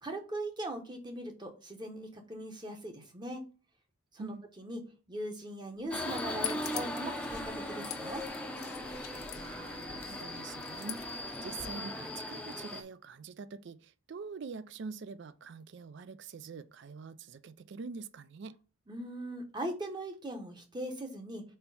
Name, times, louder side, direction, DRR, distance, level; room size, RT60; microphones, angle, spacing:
voice 1, 0.0-3.4 4.1-4.8 5.1-8.2 18.9-21.4, right 1 dB, 20° right, 0.9 m, -40 dB
sound 1, 5.8-11.7, left 11 dB, 80° left, 0.7 m, -45 dB
Subway metro underground, 5.9-12.8, left 1 dB, 5° left, 0.6 m, -39 dB
voice 2, 9.3-18.6, right 5 dB, 55° right, 0.4 m, -45 dB
4.3 x 4.3 x 5.4 m
head